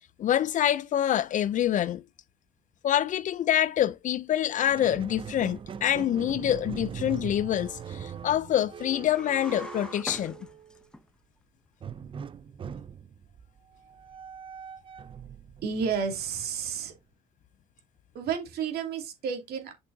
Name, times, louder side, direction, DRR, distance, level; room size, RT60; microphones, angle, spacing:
voice 1, 0.2-2.0 2.8-10.4, left 11 dB, 50° left, 0.5 m, -26 dB
Squeak, 4.5-10.9 11.8-17.0, right 8 dB, 30° right, 0.4 m, -41 dB
sound 1, 9.0-11.0, left 1 dB, 5° left, 0.8 m, -43 dB
voice 2, 15.6-16.9 18.1-19.7, right 6 dB, 70° right, 2.6 m, -31 dB
8.0 x 6.1 x 2.7 m
cardioid pair, 110°, 17 cm